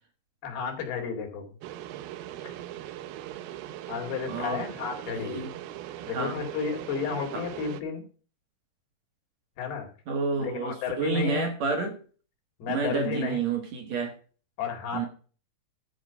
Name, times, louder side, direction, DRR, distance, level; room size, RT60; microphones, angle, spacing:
voice 1, 0.4-1.6 2.4-2.6 3.9-5.4 6.0-8.0 9.6-9.9 10.4-11.5 12.6-13.4 14.6-15.1, left 6 dB, 80° left, 4.3 m, -32 dB
sound 1, 1.6-7.8, right 13 dB, 90° right, 2.8 m, -40 dB
voice 2, 4.3-4.6 5.1-5.5 6.1-6.4 7.3-7.4 10.1-12.0 12.7-14.1 14.9-15.1, right 4 dB, 55° right, 2.3 m, -29 dB
12.5 x 4.9 x 6.9 m
omnidirectional pair, 4.4 m